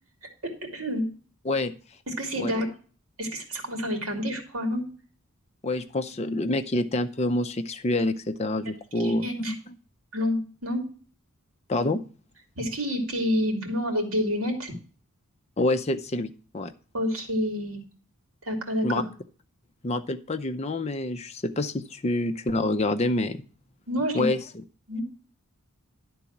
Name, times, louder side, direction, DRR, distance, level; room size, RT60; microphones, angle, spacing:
voice 1, 0.4-1.0 2.1-2.7 3.2-4.8 6.2-6.4 8.9-9.5 10.1-10.8 12.6-14.7 16.9-17.8 18.4-18.9 23.9-24.3 24.9-25.0, equal, 65° right, 4 dB, 2.5 m, -28 dB
voice 2, 5.6-9.6 11.7-12.0 15.6-16.7 18.8-19.0 19.8-23.4 24.1-24.4, left 2 dB, 30° left, 8 dB, 0.5 m, -27 dB
11.5 x 3.9 x 7.1 m, 0.40 s
head